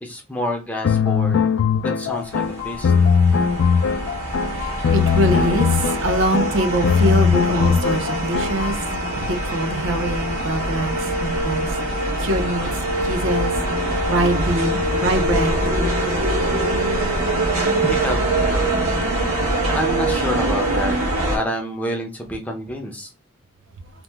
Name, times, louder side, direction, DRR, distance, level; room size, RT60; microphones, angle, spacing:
voice 1, 0.0-2.9 17.8-19.4 19.7-20.9 21.3-23.1, left 1 dB, 5° left, 0.5 m, -28 dB
sound 1, 0.8-8.8, left 6 dB, 70° left, 0.3 m, -19 dB
sound 2, 2.4-21.4, right 1 dB, 85° right, 1.2 m, -23 dB
voice 2, 4.5-8.8 9.2-12.7 13.0-15.6, right 1 dB, 65° right, 0.5 m, -24 dB
2.9 x 2.0 x 3.2 m
head